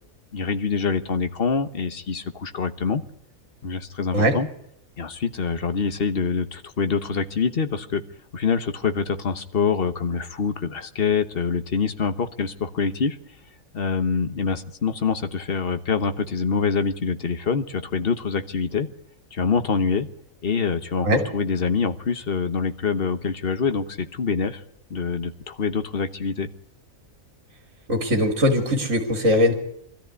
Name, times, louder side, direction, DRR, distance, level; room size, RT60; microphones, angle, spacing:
voice 1, 0.3-3.0 3.6-4.5 5.0-8.0 8.3-13.2 13.7-18.9 19.3-20.1 20.4-24.6 24.9-26.5, left 5 dB, 45° left, 10 dB, 1.3 m, -25 dB
voice 2, 27.9-29.5, left 1 dB, 65° right, 4 dB, 2.8 m, -20 dB
21.5 x 14.0 x 9.5 m, 0.73 s
omnidirectional pair, 1.4 m